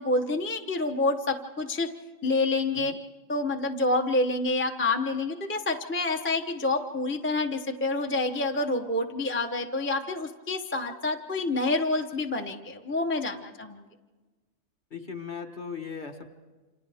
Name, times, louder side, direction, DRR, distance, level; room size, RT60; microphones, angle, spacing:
voice 1, 0.0-1.9 2.2-2.9 3.3-13.8, left 2 dB, 10° left, 3 dB, 0.6 m, -28 dB
voice 2, 14.9-16.3, left 5 dB, 35° left, 4 dB, 1.3 m, -38 dB
29.0 x 27.0 x 3.5 m, 1.3 s
omnidirectional pair, 1.6 m